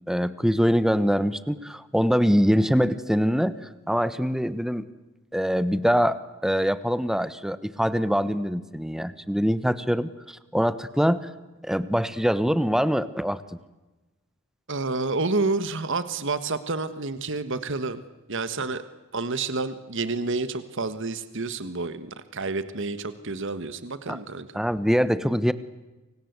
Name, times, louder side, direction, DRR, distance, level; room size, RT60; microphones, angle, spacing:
voice 1, 0.1-3.5 3.9-4.9 5.3-11.3 11.6-13.4 24.1-24.2 24.5-25.5, equal, ahead, 14 dB, 1.2 m, -23 dB
voice 2, 14.7-18.0 18.3-18.8 19.1-24.5, right 3 dB, 60° right, 12 dB, 1.5 m, -29 dB
29.0 x 25.0 x 8.2 m, 1.1 s
head